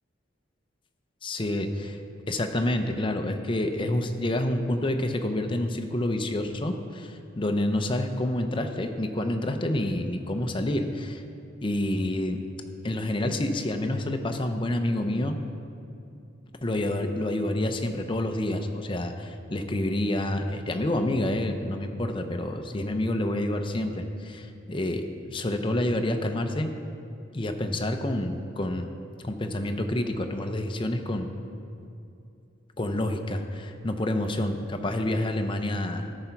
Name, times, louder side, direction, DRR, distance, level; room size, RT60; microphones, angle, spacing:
voice 1, 1.2-2.0 2.3-11.2 11.6-12.4 12.8-15.4 16.6-26.7 27.3-28.9 29.2-31.3 32.8-36.1, left 1 dB, 25° left, 6 dB, 0.6 m, -28 dB
13.0 x 5.8 x 4.5 m, 2.6 s
head